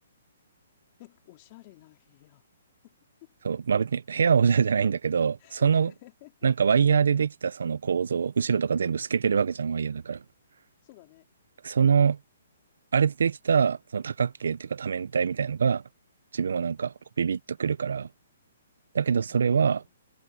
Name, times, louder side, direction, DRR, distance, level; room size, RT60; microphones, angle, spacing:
voice 1, 1.0-2.4 2.8-2.9 3.2-3.3 5.4-6.3 10.8-11.3 19.3-19.9, left 20 dB, 35° left, 4.2 m, -53 dB
voice 2, 3.4-5.9 6.4-10.2 11.6-12.2 12.9-15.8 16.3-18.1 18.9-19.8, right 6 dB, 80° right, 0.7 m, -24 dB
hypercardioid pair, 155°, 0 cm